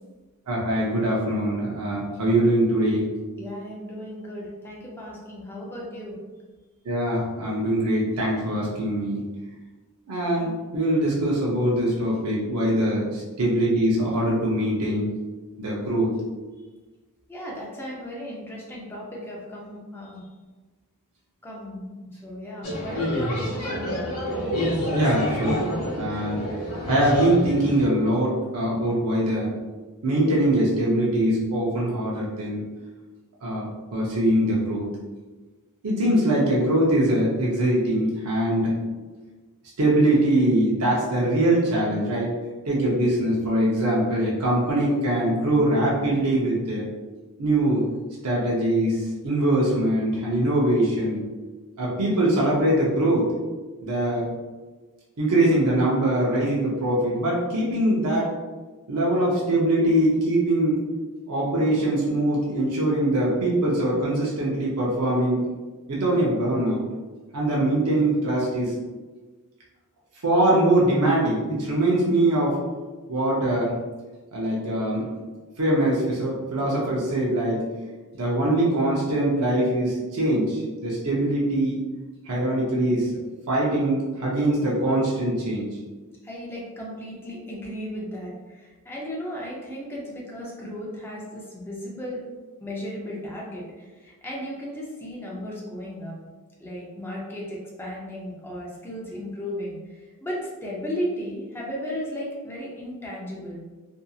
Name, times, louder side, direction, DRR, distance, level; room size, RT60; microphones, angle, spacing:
voice 1, 0.5-3.1 6.8-9.2 10.1-15.1 15.6-16.1 24.9-25.7 26.0-26.5 26.8-29.5 30.0-32.6 33.4-33.7 33.9-34.9 35.8-38.7 39.8-42.3 42.7-46.9 47.4-47.8 48.2-51.2 51.8-53.3 53.8-54.3 55.2-58.3 58.9-60.8 61.3-65.4 65.9-66.8 67.3-68.7 70.2-72.6 73.1-73.7 74.3-75.1 75.6-77.6 78.1-81.8 82.3-83.1 83.5-85.7, right 1 dB, 85° right, -4 dB, 0.6 m, -22 dB
voice 2, 3.4-6.2 17.3-20.2 21.4-24.0 86.2-92.2 92.6-96.1 96.6-103.6, equal, 10° left, -5 dB, 0.5 m, -35 dB
sound 1, 22.6-27.8, equal, 85° left, 0.8 m, -27 dB
2.7 x 2.5 x 2.3 m, 1.3 s
head